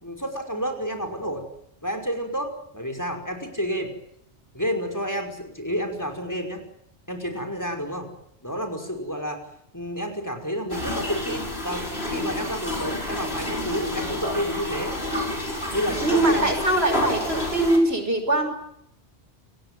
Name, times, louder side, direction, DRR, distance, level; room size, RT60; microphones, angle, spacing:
voice 1, 0.0-1.4 1.8-3.9 4.5-6.6 7.1-8.1 8.4-9.4 9.7-14.9 15.7-16.5, equal, 15° left, 5 dB, 5.4 m, -30 dB
sound 1, 10.7-17.8, left 1 dB, 70° left, 6.7 m, -29 dB
voice 2, 16.0-18.5, right 2 dB, 70° right, 6 dB, 6.1 m, -22 dB
29.5 x 19.5 x 9.4 m, 0.76 s
omnidirectional pair, 1.1 m